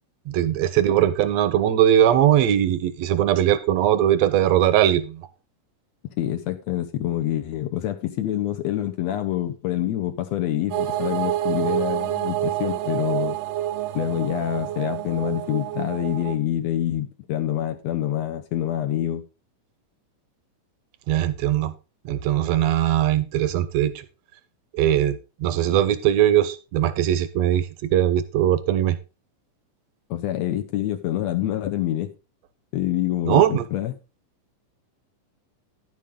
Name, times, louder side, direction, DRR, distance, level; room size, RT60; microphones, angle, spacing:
voice 1, 0.3-5.3 21.1-21.7 22.0-24.1 24.7-29.0 33.2-33.6, right 11 dB, 75° right, 13 dB, 1.6 m, -20 dB
voice 2, 6.2-13.4 13.9-19.2 30.1-32.1 32.7-33.9, left 12 dB, 70° left, 7 dB, 1.7 m, -26 dB
sound 1, 10.7-16.4, right 12 dB, 90° right, 1.4 m, -27 dB
10.5 x 8.6 x 3.6 m, 0.31 s
omnidirectional pair, 3.7 m